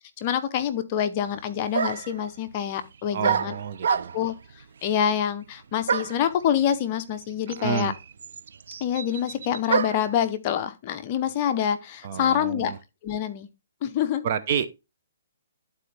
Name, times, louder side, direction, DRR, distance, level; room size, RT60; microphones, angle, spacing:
voice 1, 0.2-3.5 3.9-4.3 4.8-7.9 8.8-12.7 13.0-13.5 13.8-14.2, left 9 dB, 30° left, 0.7 m, -26 dB
sound 1, 1.2-1.3 1.7-2.2 3.2-4.4 5.9-6.3 7.2-7.3 7.5-10.1, right 6 dB, 70° right, 0.5 m, -27 dB
voice 2, 3.1-4.1 7.5-8.0 12.0-12.8 14.2-14.7, right 8 dB, 40° right, 0.8 m, -29 dB
11.0 x 4.3 x 3.3 m
hypercardioid pair, 160°, 0 cm